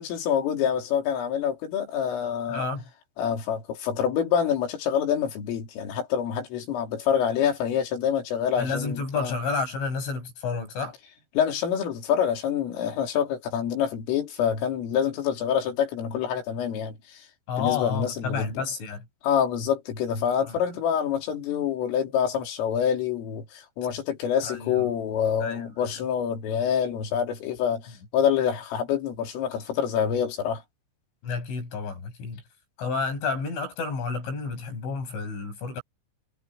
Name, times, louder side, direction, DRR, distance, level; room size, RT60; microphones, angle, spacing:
voice 1, 0.0-2.7 3.2-9.3 11.4-17.2 17.6-18.5 19.2-30.6, left 8 dB, 85° left, 6.1 m, -26 dB
voice 2, 2.5-2.8 8.6-11.0 17.5-19.0 20.4-20.6 24.5-24.7 25.4-25.7 31.2-32.4 32.8-35.8, left 5 dB, 70° left, 9.4 m, -30 dB
omnidirectional pair, 5.7 m